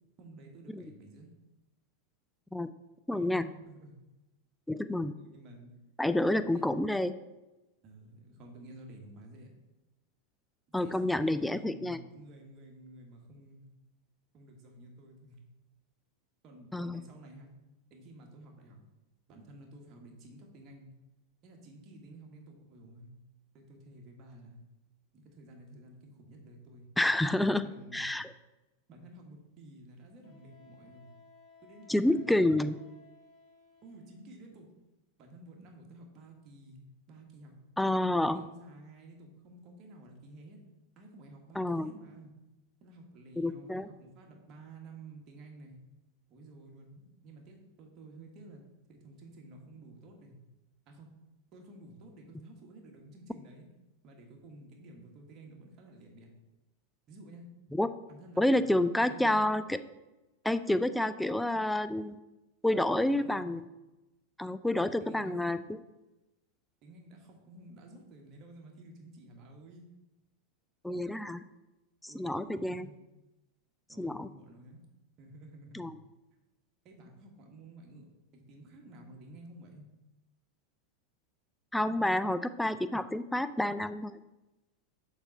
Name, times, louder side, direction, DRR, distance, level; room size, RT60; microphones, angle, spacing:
voice 1, 0.2-1.3 3.1-4.0 5.1-5.7 6.0-6.8 7.8-9.5 10.8-13.7 14.3-15.4 16.4-17.5 17.9-18.8 19.3-20.9 21.4-23.1 23.5-24.6 25.1-26.9 27.3-28.2 28.9-31.1 31.6-32.5 33.8-34.7 35.2-37.6 38.3-40.6 41.0-42.3 42.8-45.8 46.3-48.6 48.9-50.4 50.9-51.1 51.5-53.7 54.0-56.3 57.1-57.4 58.1-59.5 62.9-63.5 64.7-65.7 66.8-69.8 72.1-72.9 73.9-74.8 75.2-75.9 76.8-78.1 78.3-79.9, right 2 dB, 35° right, 1 dB, 1.4 m, -52 dB
voice 2, 3.1-3.5 4.7-5.1 6.0-7.1 10.7-12.0 16.7-17.0 27.0-27.7 27.9-28.3 31.9-32.7 37.8-38.4 41.6-41.9 43.4-43.9 57.7-57.9 58.4-59.8 60.4-62.2 62.6-63.6 64.4-65.6 70.8-71.4 72.1-72.9 74.0-74.3 75.7-75.9 81.7-84.2, left 1 dB, 5° left, 12 dB, 0.3 m, -29 dB
Wind instrument woodwind instrument, 30.2-34.3, left 5 dB, 40° left, 2.4 m, -59 dB
7.2 x 3.4 x 5.3 m, 1.0 s
figure-of-eight pair, 90°, 0 cm